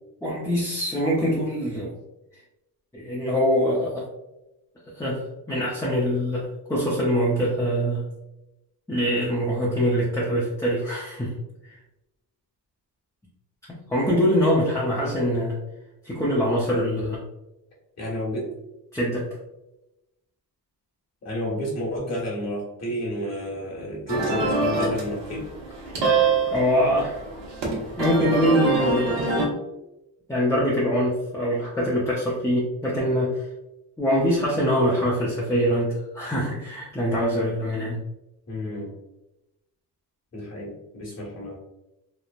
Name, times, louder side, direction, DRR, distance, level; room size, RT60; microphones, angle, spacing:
voice 1, 0.2-2.0 2.9-4.0 5.0-8.0 8.9-11.3 13.7-15.6 16.0-17.2 18.9-19.3 26.5-27.2 28.0-29.3 30.3-33.4 34.0-38.0, equal, 5° left, -6 dB, 0.6 m, -24 dB
voice 2, 18.0-18.5 21.2-25.5 38.5-38.9 40.3-41.6, equal, 40° left, -4 dB, 1.3 m, -31 dB
sound 1, 24.1-29.5, right 3 dB, 80° right, 0.9 m, -25 dB
3.1 x 2.0 x 2.4 m, 0.93 s
cardioid pair, 95°, 42 cm